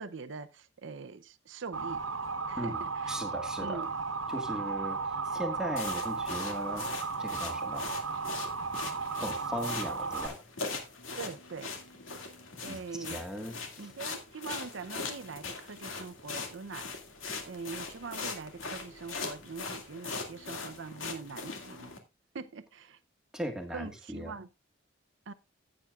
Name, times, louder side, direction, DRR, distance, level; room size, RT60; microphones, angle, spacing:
voice 1, 0.0-2.0 2.5-3.2 3.6-3.9 11.2-11.7 12.6-13.2 13.8-16.9 17.5-21.9 22.3-23.0 23.7-24.5 25.3-25.4, right 4 dB, 65° right, 0.6 m, -42 dB
Motor vehicle (road) / Siren, 1.7-10.3, right 4 dB, 85° right, 1.3 m, -35 dB
voice 2, 3.1-3.8 4.3-7.9 9.2-10.4 12.6-12.8 13.1-13.9 23.3-24.3, equal, 5° right, 1.5 m, -38 dB
sound 1, 5.8-22.0, left 4 dB, 75° left, 2.1 m, -41 dB
14.5 x 8.8 x 2.4 m
head